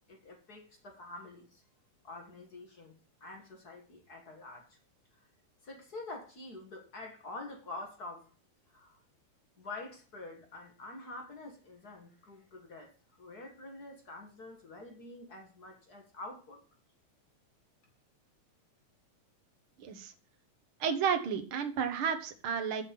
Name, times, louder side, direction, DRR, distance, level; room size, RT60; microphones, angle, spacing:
voice 1, 0.1-1.6 2.0-4.8 5.6-8.3 8.7-9.0 9.6-12.9 13.2-16.6, left 2 dB, 40° left, 3 dB, 1.6 m, -47 dB
voice 2, 19.8-20.1 20.8-22.8, right 7 dB, 60° right, 8 dB, 1.6 m, -32 dB
7.2 x 6.3 x 7.6 m, 0.38 s
omnidirectional pair, 3.5 m